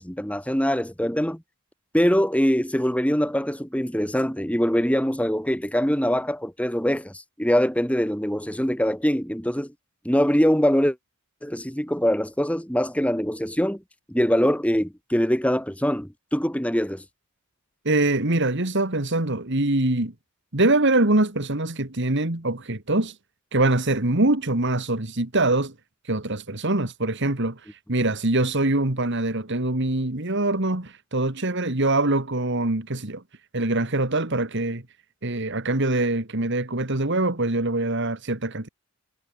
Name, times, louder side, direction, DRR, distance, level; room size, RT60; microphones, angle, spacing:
voice 1, 0.0-1.4 1.9-9.7 10.0-11.0 11.4-13.8 14.1-17.0, equal, 5° left, 5.9 m, -23 dB
voice 2, 17.9-20.1 20.5-23.1 23.5-25.7 26.1-33.2 33.5-34.8 35.2-38.7, right 2 dB, 55° right, 2.3 m, -23 dB
head